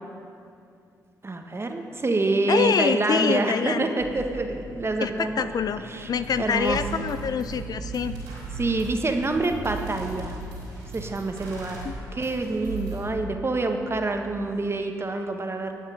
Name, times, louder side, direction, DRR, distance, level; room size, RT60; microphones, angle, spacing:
voice 1, 1.2-5.5 5.9-6.1 6.4-6.8 8.6-10.4 10.9-11.8 12.1-15.7, right 2 dB, 30° right, 4 dB, 1.4 m, -26 dB
voice 2, 2.5-3.9 5.0-8.1 11.8-11.9, left 6 dB, 50° left, 11 dB, 0.5 m, -26 dB
sound 1, 4.0-14.4, right 2 dB, 70° right, 1.9 m, -44 dB
sound 2, 6.2-6.3 6.6-13.1, right 4 dB, 85° right, 3.2 m, -37 dB
14.5 x 9.0 x 5.0 m, 2.4 s
hypercardioid pair, 40°, 8 cm